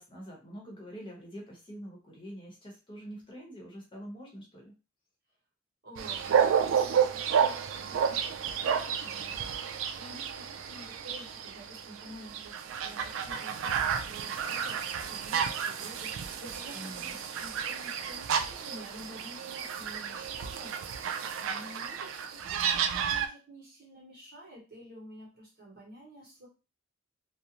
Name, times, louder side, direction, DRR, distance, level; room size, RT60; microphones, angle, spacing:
voice 1, 0.0-4.7 16.7-17.2, equal, 25° left, -2 dB, 0.9 m, -45 dB
voice 2, 5.8-20.9 21.4-26.5, equal, 50° right, -5 dB, 1.0 m, -50 dB
sound 1, 6.0-23.3, right 7 dB, 70° right, 0.3 m, -31 dB
2.5 x 2.0 x 2.8 m, 0.32 s
head